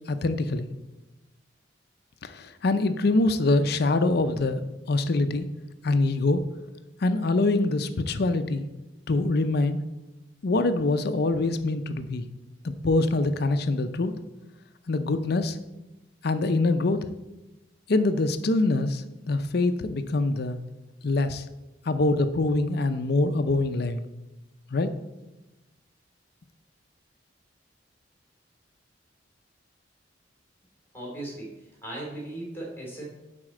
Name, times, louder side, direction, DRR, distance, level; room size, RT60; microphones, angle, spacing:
voice 1, 0.1-0.7 2.2-4.6 4.9-5.4 5.8-6.4 7.0-8.7 9.1-9.8 10.4-12.2 12.8-14.1 14.9-15.6 16.2-17.0 17.9-20.6 21.0-21.5 21.9-24.0 24.7-24.9, left 2 dB, 55° left, 10 dB, 0.5 m, -24 dB
voice 2, 30.9-33.0, right 1 dB, 10° left, -3 dB, 3.0 m, -37 dB
9.7 x 4.3 x 7.4 m, 1.0 s
head